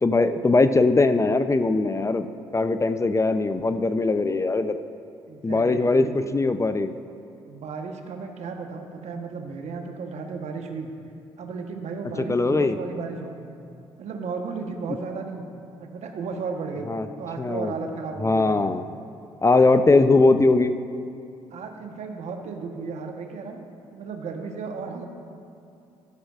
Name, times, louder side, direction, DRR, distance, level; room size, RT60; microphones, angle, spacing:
voice 1, 0.0-2.3 2.5-4.8 5.4-6.9 12.2-12.8 16.9-17.1 17.4-17.7 18.2-18.9 19.4-20.7, left 3 dB, 25° left, 10 dB, 0.5 m, -20 dB
voice 2, 5.3-6.2 7.5-10.9 11.4-13.5 14.0-15.5 15.8-16.9 17.2-18.7 21.5-23.6 23.9-25.1, right 4 dB, 65° right, 4 dB, 1.1 m, -34 dB
12.5 x 12.0 x 2.5 m, 2.7 s
hypercardioid pair, 50°, 12 cm